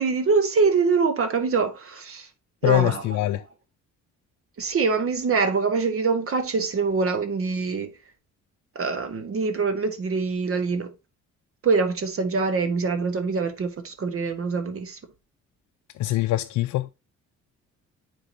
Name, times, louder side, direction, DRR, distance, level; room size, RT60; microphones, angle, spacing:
voice 1, 0.0-2.3 2.6-3.0 4.6-7.9 8.7-10.9 11.6-15.0, right 4 dB, 45° right, 1.3 m, -24 dB
voice 2, 2.6-3.4 16.0-16.9, left 15 dB, 70° left, 0.5 m, -23 dB
9.6 x 3.9 x 2.7 m
cardioid pair, 90°, 30 cm